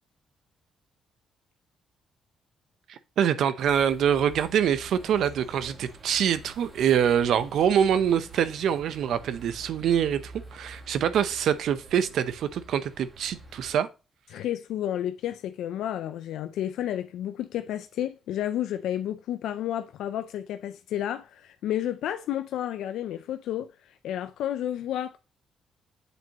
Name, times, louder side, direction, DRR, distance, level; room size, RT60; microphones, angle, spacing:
voice 1, 2.9-13.9, right 9 dB, 75° right, 0.6 m, -25 dB
sound 1, 3.6-13.7, right 3 dB, 35° right, 1.6 m, -47 dB
voice 2, 14.3-23.7 24.0-25.2, left 11 dB, 90° left, 0.4 m, -31 dB
8.0 x 4.4 x 2.8 m
cardioid pair, 115°, 0 cm